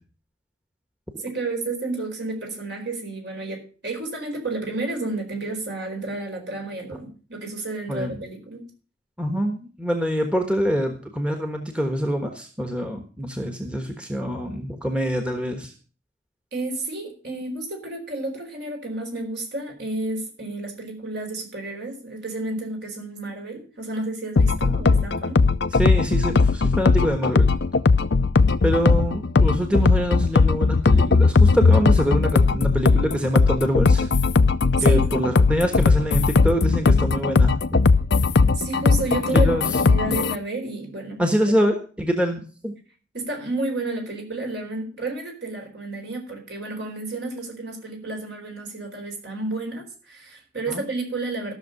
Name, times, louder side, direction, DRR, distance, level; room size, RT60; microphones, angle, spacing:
voice 1, 1.2-8.7 16.5-25.4 34.8-35.3 38.5-41.6 43.1-51.5, right 2 dB, 60° right, 2 dB, 4.5 m, -31 dB
voice 2, 7.9-8.2 9.2-15.7 24.7-24.8 25.7-27.5 28.6-34.1 34.8-37.8 39.3-39.6 41.2-42.8 50.7-50.8, equal, 5° right, 4 dB, 1.3 m, -25 dB
sound 1, 24.4-40.4, left 4 dB, 65° left, 0.6 m, -18 dB
14.0 x 6.7 x 6.6 m, 0.38 s
head